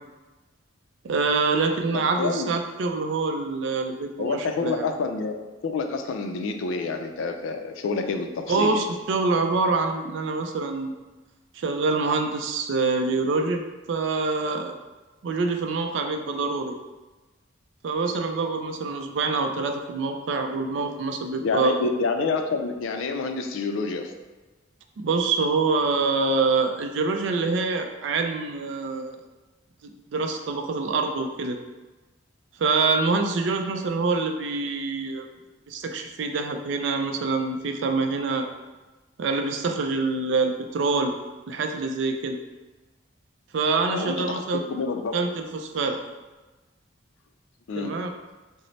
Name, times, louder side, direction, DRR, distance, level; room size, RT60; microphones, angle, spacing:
voice 1, 1.0-4.7 8.5-11.0 11.5-13.6 13.9-14.7 15.2-16.8 17.8-21.9 25.0-29.2 29.8-31.6 32.6-35.2 35.7-38.5 39.2-41.1 41.5-42.4 43.5-44.6 45.1-46.0 47.8-48.1, right 4 dB, 70° right, 5 dB, 0.3 m, -25 dB
voice 2, 1.9-2.5 4.2-5.4 5.6-8.8 21.4-24.1 43.9-44.4 44.7-45.1 47.7-48.0, left 4 dB, 80° left, 6 dB, 0.3 m, -28 dB
3.1 x 2.0 x 3.9 m, 1.2 s
head